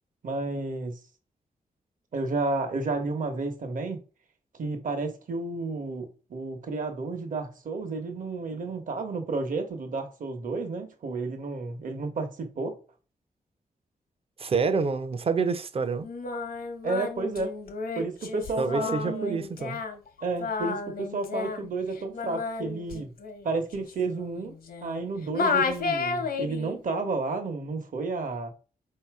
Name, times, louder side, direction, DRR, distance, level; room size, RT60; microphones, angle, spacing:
voice 1, 0.2-1.0 2.1-4.0 4.6-12.8 16.8-17.6 17.9-19.4 20.2-23.1 23.4-24.5 24.8-28.5, right 3 dB, 60° right, 1.0 m, -31 dB
voice 2, 14.4-16.1 18.6-19.8, right 4 dB, 40° right, 0.5 m, -27 dB
Singing, 16.0-25.0 25.3-26.7, left 4 dB, 80° left, 0.9 m, -32 dB
4.1 x 2.8 x 4.6 m
wide cardioid pair, 130°, 15 cm